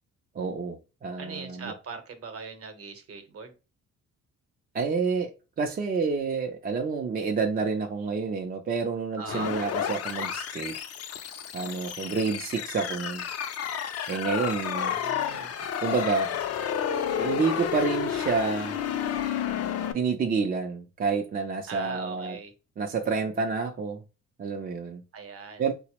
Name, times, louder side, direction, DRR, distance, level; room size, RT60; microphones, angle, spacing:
voice 1, 0.3-1.7 4.7-10.7 11.5-13.2 14.1-14.9 15.8-16.4 17.2-18.8 19.9-22.4 22.8-24.0 24.4-25.0 25.6-25.7, right 4 dB, 30° right, 0.4 m, -29 dB
voice 2, 1.2-3.5 9.2-9.5 14.8-15.5 21.7-22.5 25.1-25.6, right 4 dB, 50° right, 0.8 m, -40 dB
sound 1, 9.3-19.9, left 8 dB, 55° left, 0.5 m, -31 dB
4.0 x 2.0 x 2.9 m
cardioid pair, 90°, 30 cm